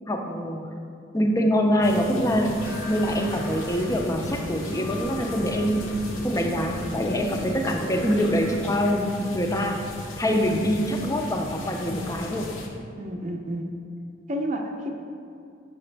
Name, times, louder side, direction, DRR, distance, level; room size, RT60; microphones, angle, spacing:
voice 1, 0.1-0.7 1.1-2.6 2.9-5.9 6.2-9.8 10.2-12.5, equal, 15° left, 2 dB, 0.4 m, -24 dB
sound 1, 1.8-12.7, left 2 dB, 80° left, 0.7 m, -37 dB
sound 2, 2.6-8.7, left 1 dB, 10° right, 0.8 m, -38 dB
voice 2, 13.0-13.8 14.3-14.9, equal, 40° right, 2 dB, 0.5 m, -30 dB
6.1 x 4.9 x 3.3 m, 2.4 s
head